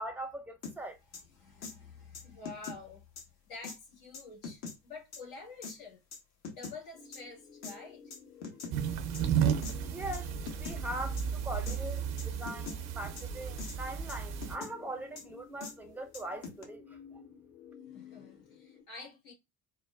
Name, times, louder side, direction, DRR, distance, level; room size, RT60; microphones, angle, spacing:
voice 1, 0.0-1.0 9.9-10.3 10.6-17.2, right 1 dB, 5° right, 0.3 m, -41 dB
sound 1, 0.6-0.8 1.1-1.2 1.6-1.7 2.1-2.8 3.2-3.3 3.6-3.8 4.1-4.8 5.1-5.2 5.6-5.8 6.1-6.8 7.1-7.2 7.6-7.7 8.1-8.8 9.1-9.2 9.6-9.8 10.1-10.2 10.5-10.8 11.2-11.3 11.7-11.8 12.2-12.8 13.2-13.3 13.6-13.8 14.1-14.7 15.2-15.3 15.6-15.7 16.1-16.6, left 4 dB, 35° left, 0.9 m, -42 dB
voice 2, 1.1-3.0 3.4-6.0 6.5-8.1 8.5-8.7 12.2-12.3 17.8-19.3, left 3 dB, 65° left, 1.6 m, -49 dB
sound 2, 6.9-18.8, left 7 dB, 80° left, 0.8 m, -54 dB
sound 3, 8.7-14.6, right 8 dB, 45° right, 0.6 m, -33 dB
3.9 x 2.1 x 2.3 m
figure-of-eight pair, 60°, 46 cm